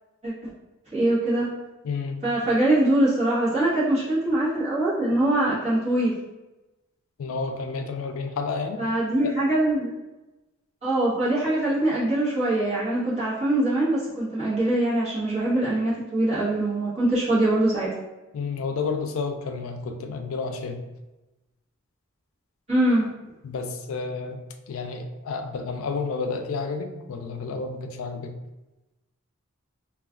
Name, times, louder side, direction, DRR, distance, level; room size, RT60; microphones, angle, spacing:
voice 1, 0.9-1.5 2.2-6.1 8.8-9.9 10.8-17.9 22.7-23.3, right 1 dB, 30° right, -10 dB, 1.0 m, -23 dB
voice 2, 1.8-2.2 7.2-8.8 9.2-9.3 18.3-20.8 23.4-24.4 24.7-28.3, left 4 dB, 80° left, 6 dB, 0.4 m, -30 dB
2.3 x 2.3 x 3.6 m, 1.0 s
head